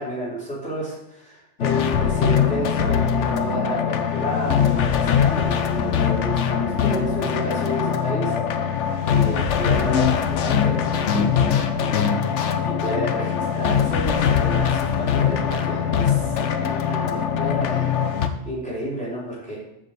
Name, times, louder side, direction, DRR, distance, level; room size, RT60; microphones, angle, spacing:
voice 1, 0.0-8.8 9.1-12.1 12.7-17.9 18.4-19.6, right 1 dB, 5° left, -8 dB, 4.4 m, -31 dB
sound 1, 1.6-18.3, left 8 dB, 80° left, 1.1 m, -22 dB
7.6 x 6.4 x 6.7 m, 0.82 s
omnidirectional pair, 1.2 m